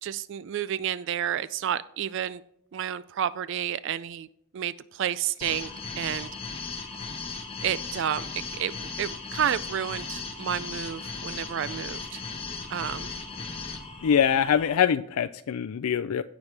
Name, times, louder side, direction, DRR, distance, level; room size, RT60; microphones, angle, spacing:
voice 1, 0.0-2.4 2.7-4.3 4.5-5.7 6.0-6.3 7.6-8.3 8.5-12.2 12.7-13.1, right 9 dB, 55° right, 16 dB, 0.3 m, -30 dB
sound 1, 5.4-14.7, left 4 dB, 25° left, 1.2 m, -37 dB
voice 2, 14.0-16.2, left 8 dB, 90° left, 11 dB, 0.4 m, -24 dB
16.5 x 6.1 x 3.3 m, 0.73 s
head